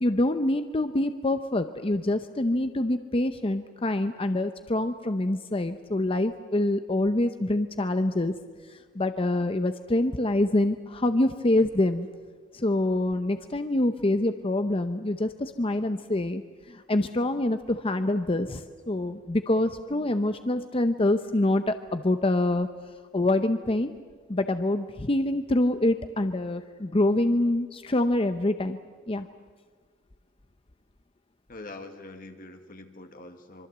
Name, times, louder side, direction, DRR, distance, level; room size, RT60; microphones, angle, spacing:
voice 1, 0.0-8.3 8.7-12.1 12.5-22.7 23.1-23.9 24.3-28.8 29.1-29.3, left 1 dB, 30° left, 9 dB, 0.8 m, -26 dB
voice 2, 31.5-33.7, left 2 dB, 50° left, 5 dB, 1.7 m, -44 dB
25.5 x 24.0 x 8.0 m, 1.5 s
head